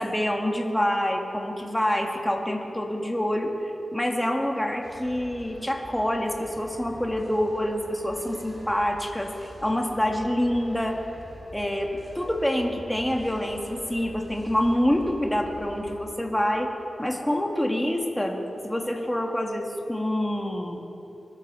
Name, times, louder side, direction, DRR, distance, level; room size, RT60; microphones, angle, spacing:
voice 1, 0.0-3.5 3.9-11.0 11.5-16.7 17.0-18.4 18.6-20.8, left 1 dB, 10° left, 1 dB, 2.2 m, -26 dB
sound 1, 4.8-16.0, equal, 35° right, 4.5 m, -45 dB
24.5 x 8.3 x 7.1 m, 2.9 s
cardioid pair, 45°, 0 cm